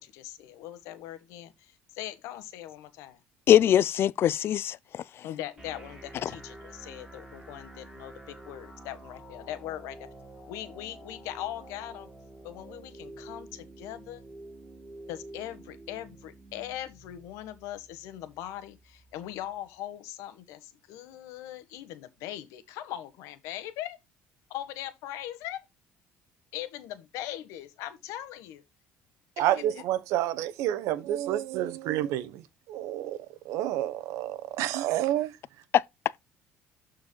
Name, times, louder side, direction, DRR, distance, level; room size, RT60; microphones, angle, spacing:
voice 1, 0.0-3.2 5.2-10.1 10.5-12.1 12.4-14.2 15.1-24.0 24.5-25.6 26.5-28.6 29.5-29.8, left 13 dB, 80° left, 1.4 m, -40 dB
voice 2, 3.5-5.0 6.2-6.3 35.7-35.8, left 11 dB, 50° left, 0.4 m, -22 dB
sound 1, 5.6-19.5, right 1 dB, 10° right, 4.7 m, -49 dB
voice 3, 29.4-32.4 32.7-33.2 33.4-35.3, right 13 dB, 75° right, 1.1 m, -29 dB
13.0 x 4.7 x 2.2 m
cardioid pair, 105°, 5 cm